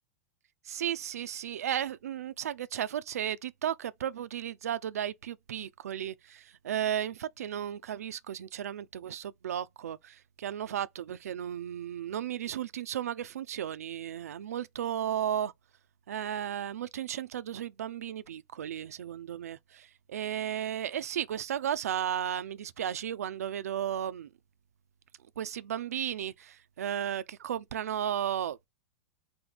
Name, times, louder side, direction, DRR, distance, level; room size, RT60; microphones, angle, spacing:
voice 1, 0.6-15.5 16.1-24.3 25.4-28.7, right 10 dB, 85° right, 0.5 m, -34 dB
4.4 x 2.8 x 3.9 m
hypercardioid pair, 115°, 8 cm